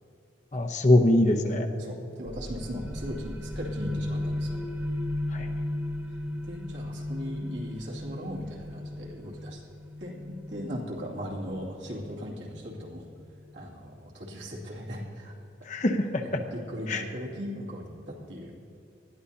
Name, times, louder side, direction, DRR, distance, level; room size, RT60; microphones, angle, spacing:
voice 1, 0.5-1.7 5.3-5.5 15.7-16.4 16.9-17.0, left 1 dB, 40° left, 4 dB, 0.8 m, -23 dB
voice 2, 1.8-4.6 6.5-9.6 10.0-13.0 13.5-15.3 16.2-18.6, equal, 75° right, -3 dB, 2.5 m, -38 dB
sound 1, 2.2-13.6, left 1 dB, 10° right, 1.0 m, -36 dB
19.5 x 13.0 x 2.8 m, 2.7 s
head